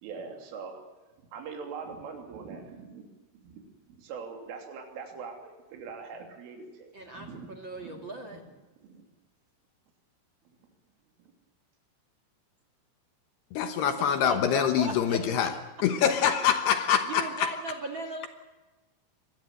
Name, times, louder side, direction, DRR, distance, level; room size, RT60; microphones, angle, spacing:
voice 1, 0.0-0.8 1.3-3.1 3.4-8.6 8.8-9.0 11.2-11.3, right 5 dB, 85° right, 3 dB, 5.5 m, -43 dB
voice 2, 6.9-8.4 14.2-15.8 17.0-18.3, right 2 dB, 50° right, 6 dB, 1.4 m, -37 dB
voice 3, 13.5-15.5 15.8-17.5, left 8 dB, 70° left, 8 dB, 2.8 m, -25 dB
24.5 x 19.5 x 7.8 m, 1.2 s
omnidirectional pair, 5.6 m